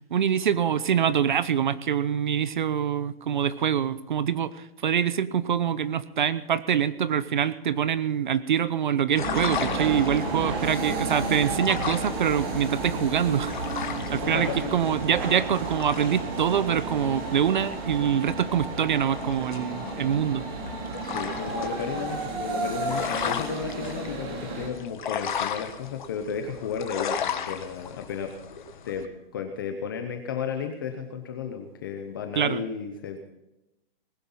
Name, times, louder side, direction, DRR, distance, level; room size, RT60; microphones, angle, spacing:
voice 1, 0.1-4.5 4.8-13.5 14.1-20.4 32.4-32.6, right 8 dB, 55° right, 16 dB, 0.8 m, -25 dB
sound 1, 9.2-29.1, left 8 dB, 55° left, 1.5 m, -37 dB
sound 2, 9.2-24.7, right 3 dB, 25° right, 2.2 m, -32 dB
voice 2, 14.0-14.7 21.0-28.3 28.8-33.2, left 6 dB, 20° left, 6 dB, 0.7 m, -33 dB
19.5 x 10.0 x 5.6 m, 0.93 s
hypercardioid pair, 175°, 30 cm